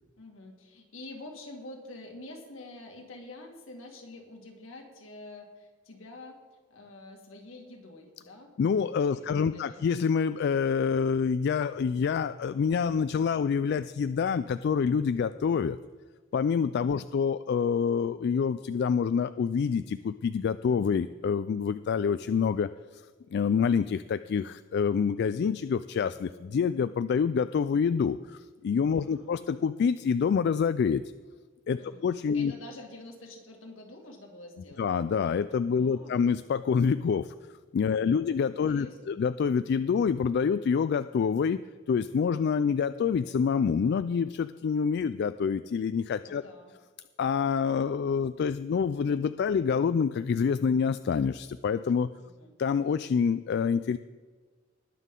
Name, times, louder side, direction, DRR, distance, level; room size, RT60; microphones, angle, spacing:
voice 1, 0.2-6.4 6.7-8.5 9.1-9.8 16.8-17.1 28.9-29.3 31.7-32.1 32.3-34.9 35.7-36.3 37.9-38.3 38.7-39.2 46.2-46.7 52.2-52.5, left 2 dB, 75° left, 2 dB, 2.1 m, -47 dB
voice 2, 8.6-15.8 16.3-23.0 23.3-31.0 31.7-32.5 34.8-37.3 37.7-41.6 41.9-46.4 47.2-52.1 52.6-54.0, left 6 dB, 55° left, 13 dB, 0.3 m, -27 dB
20.0 x 7.5 x 3.8 m, 1.4 s
head